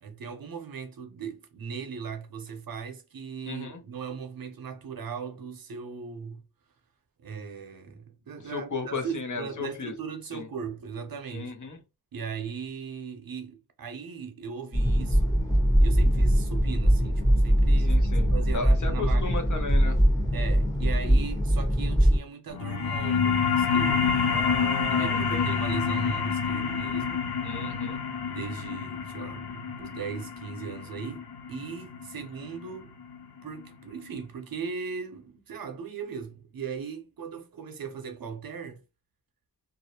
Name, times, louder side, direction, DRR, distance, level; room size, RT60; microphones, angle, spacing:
voice 1, 0.0-6.4 7.2-11.5 12.1-15.4 15.8-19.5 20.3-24.2 24.9-27.3 28.3-32.9 33.4-38.8, right 6 dB, 65° right, 0.7 m, -38 dB
voice 2, 3.5-3.8 8.4-9.9 10.3-10.5 11.3-11.8 17.9-20.0 24.2-25.5 27.4-28.0, left 4 dB, 55° left, 0.7 m, -35 dB
sound 1, 14.7-22.2, equal, 10° left, 0.8 m, -22 dB
sound 2, 22.5-33.6, left 6 dB, 90° left, 0.6 m, -28 dB
2.4 x 2.0 x 2.8 m
wide cardioid pair, 75°, 37 cm